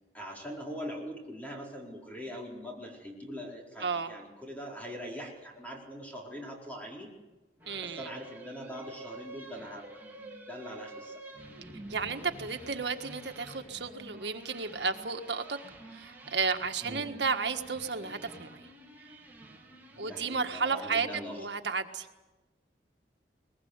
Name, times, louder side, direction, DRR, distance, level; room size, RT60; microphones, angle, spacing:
voice 1, 0.1-7.1 7.8-11.2 16.8-17.1 20.0-21.5, equal, 10° left, -1 dB, 4.5 m, -42 dB
voice 2, 3.8-4.1 7.7-8.1 11.9-15.6 15.9-18.7 20.0-21.1 21.4-22.1, right 5 dB, 75° right, 6 dB, 1.6 m, -33 dB
sound 1, 7.6-21.2, right 2 dB, 10° right, 3.7 m, -49 dB
23.0 x 20.5 x 8.0 m, 1.1 s
head